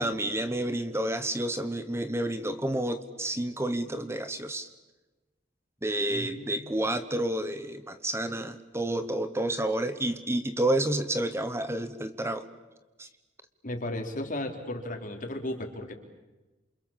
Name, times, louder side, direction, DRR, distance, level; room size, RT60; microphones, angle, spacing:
voice 1, 0.0-4.7 5.8-12.5 13.0-13.1, right 1 dB, 15° right, 10 dB, 1.1 m, -30 dB
voice 2, 6.1-6.7 13.6-15.9, left 1 dB, 50° left, 4 dB, 3.9 m, -35 dB
29.0 x 27.5 x 7.4 m, 1.1 s
head